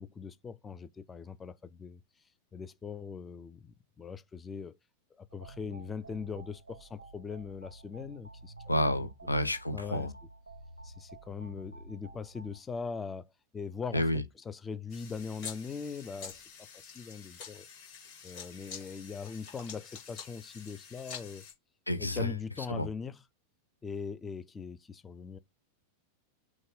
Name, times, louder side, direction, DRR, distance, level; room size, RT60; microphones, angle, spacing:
voice 1, 0.0-2.0 2.5-4.8 5.2-9.1 9.7-10.1 10.8-16.4 16.7-17.7 18.2-21.4 22.0-23.2 23.8-25.4, left 5 dB, 15° left, 0.4 m, -41 dB
sound 1, 5.3-12.6, right 2 dB, 85° right, 0.6 m, -51 dB
voice 2, 8.7-10.1 13.9-14.2 21.9-22.3 22.7-22.9, left 1 dB, 85° left, 0.6 m, -30 dB
sound 2, 14.9-21.5, left 6 dB, 40° left, 2.2 m, -47 dB
6.1 x 2.2 x 3.7 m
figure-of-eight pair, 90°, 0 cm